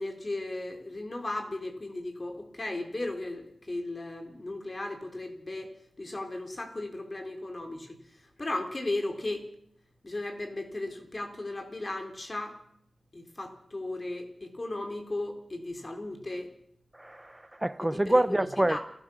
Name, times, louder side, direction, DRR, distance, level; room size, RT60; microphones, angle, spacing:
voice 1, 0.0-8.0 8.4-9.5 10.0-12.6 13.1-16.5 17.8-18.8, left 2 dB, 35° left, 4.0 m, -36 dB
voice 2, 16.9-18.8, right 1 dB, 15° right, 1.0 m, -26 dB
29.0 x 13.5 x 6.5 m
wide cardioid pair, 75°, 0 cm